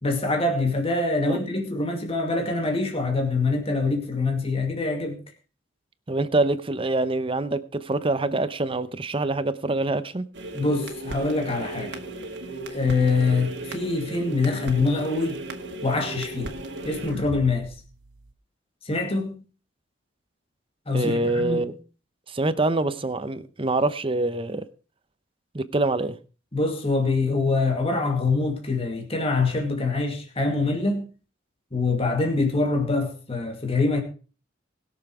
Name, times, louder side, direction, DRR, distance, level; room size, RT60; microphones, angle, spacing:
voice 1, 0.0-5.2 10.5-12.0 12.7-15.4 15.8-16.5 16.8-17.7 18.8-19.4 20.9-21.7 26.5-31.0 31.7-34.0, left 3 dB, 30° left, 2.2 m, -24 dB
voice 2, 6.1-10.2 20.9-21.7 22.3-24.6 25.5-26.2, right 2 dB, 30° right, 0.8 m, -25 dB
sound 1, 10.3-18.3, right 1 dB, 65° right, 1.9 m, -36 dB
20.5 x 7.0 x 4.9 m
head